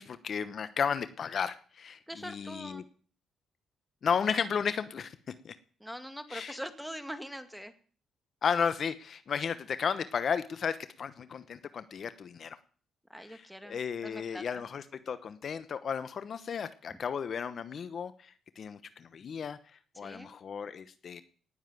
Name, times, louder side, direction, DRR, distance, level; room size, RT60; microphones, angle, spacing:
voice 1, 0.0-2.8 4.0-5.2 5.4-5.5 6.3-6.6 8.4-12.6 13.2-21.2, left 7 dB, 50° left, 13 dB, 0.9 m, -34 dB
voice 2, 2.1-2.8 5.8-7.7 13.1-14.6 20.0-20.3, equal, ahead, 8 dB, 2.1 m, -43 dB
18.0 x 7.4 x 9.2 m, 0.43 s
cardioid pair, 90°, 0 cm